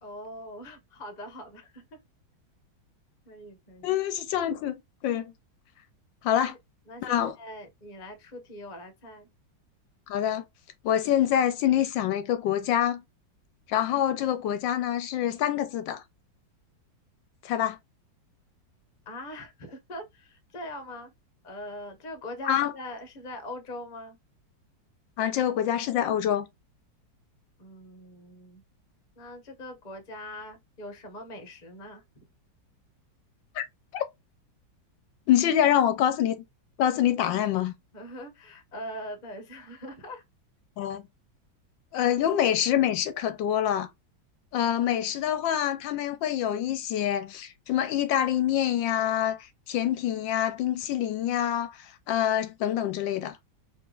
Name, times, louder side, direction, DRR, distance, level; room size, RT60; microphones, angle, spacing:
voice 1, 0.0-2.0 3.2-3.9 6.3-6.6 6.9-9.3 19.1-21.1 21.4-24.2 27.6-28.6 29.2-32.2 37.9-40.2, left 1 dB, 30° left, 1.0 m, -42 dB
voice 2, 3.8-5.3 6.2-6.5 7.0-7.3 10.1-10.4 10.8-13.0 13.7-16.0 17.4-17.8 22.5-22.7 25.2-26.5 33.6-33.7 33.9-34.0 35.3-36.4 36.8-37.7 40.8-41.0 41.9-43.9 44.5-49.4 49.7-53.4, left 10 dB, 80° left, 1.3 m, -26 dB
4.8 x 3.4 x 2.3 m
omnidirectional pair, 2.1 m